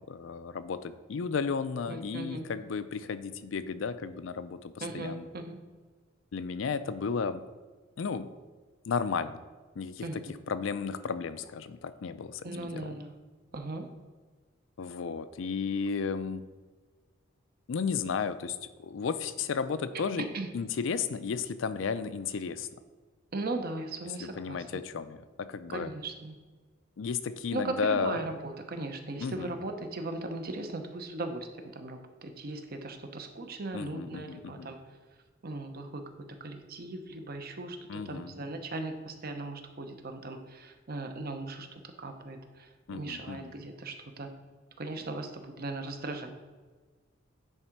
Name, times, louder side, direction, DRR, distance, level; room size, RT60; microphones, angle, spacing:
voice 1, 0.1-5.3 6.3-7.4 8.0-8.3 8.9-9.4 9.8-13.0 14.8-16.5 17.7-20.3 20.5-22.7 24.2-25.9 27.0-28.3 29.2-29.6 33.7-34.7 37.9-38.3 42.9-43.5, left 5 dB, 70° left, 13 dB, 0.4 m, -33 dB
voice 2, 1.9-2.4 4.8-5.6 10.0-10.2 12.4-13.2 13.5-13.9 20.3-20.5 23.3-24.7 25.7-26.3 27.5-34.8 35.4-41.7 42.0-44.3 44.8-46.4, right 2 dB, 50° right, 6 dB, 0.8 m, -38 dB
10.0 x 3.7 x 4.6 m, 1.4 s
head